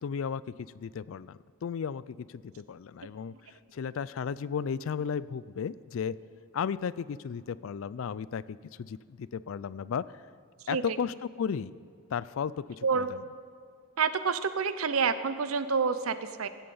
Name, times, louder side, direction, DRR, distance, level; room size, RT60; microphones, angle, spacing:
voice 1, 0.0-6.2 6.5-10.2 10.7-11.7 12.1-13.2, left 7 dB, 70° left, 19 dB, 0.3 m, -35 dB
voice 2, 14.0-16.5, right 5 dB, 85° right, 12 dB, 0.7 m, -28 dB
16.5 x 8.6 x 5.6 m, 2.2 s
head